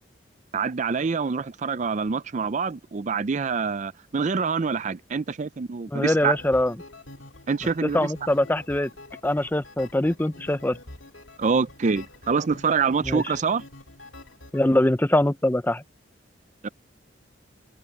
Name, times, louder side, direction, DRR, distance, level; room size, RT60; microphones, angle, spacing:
voice 1, 0.5-6.4 7.5-8.1 11.4-13.6 16.6-16.7, right 5 dB, 40° right, 0.4 m, -26 dB
voice 2, 5.9-6.7 7.8-8.9 9.2-10.8 13.0-13.3 14.5-15.8, left 1 dB, 10° left, 0.5 m, -23 dB
sound 1, 6.0-14.6, left 2 dB, 80° left, 2.5 m, -46 dB
open air
head